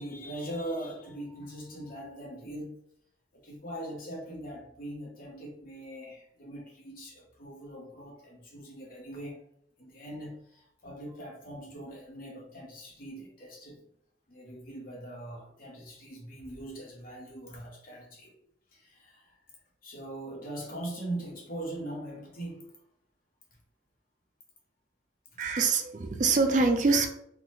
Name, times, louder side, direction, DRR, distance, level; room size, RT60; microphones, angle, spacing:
voice 1, 0.0-2.8 3.3-9.4 9.8-13.8 14.3-18.4 18.7-19.4 19.8-22.7, right 1 dB, 50° left, -2 dB, 1.0 m, -41 dB
voice 2, 25.4-27.1, right 4 dB, 40° right, 5 dB, 0.4 m, -24 dB
3.8 x 2.1 x 3.1 m, 0.72 s
head